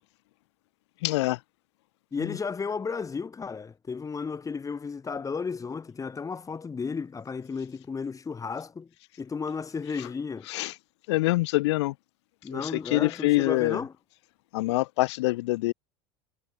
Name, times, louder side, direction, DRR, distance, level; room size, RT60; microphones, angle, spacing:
voice 1, 1.0-1.4 2.2-2.3 10.5-10.7 11.1-11.9 12.5-13.8 14.5-15.7, left 19 dB, 75° left, 1.9 m, -25 dB
voice 2, 2.1-8.9 9.2-10.5 12.4-13.9, left 5 dB, 25° left, 6.5 m, -33 dB
hypercardioid pair, 95°, 14 cm